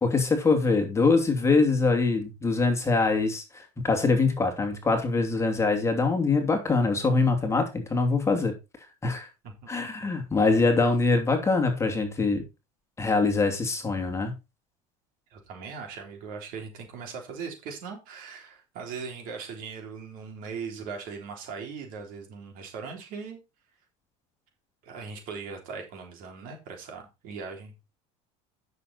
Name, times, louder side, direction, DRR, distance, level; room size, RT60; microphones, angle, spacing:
voice 1, 0.0-8.5 9.0-9.3 9.7-12.4 13.0-14.3, left 3 dB, 15° left, 2.5 m, -24 dB
voice 2, 15.3-23.4 24.8-27.7, right 5 dB, 60° right, 3.5 m, -39 dB
9.7 x 6.6 x 4.1 m
supercardioid pair, 115°, 16 cm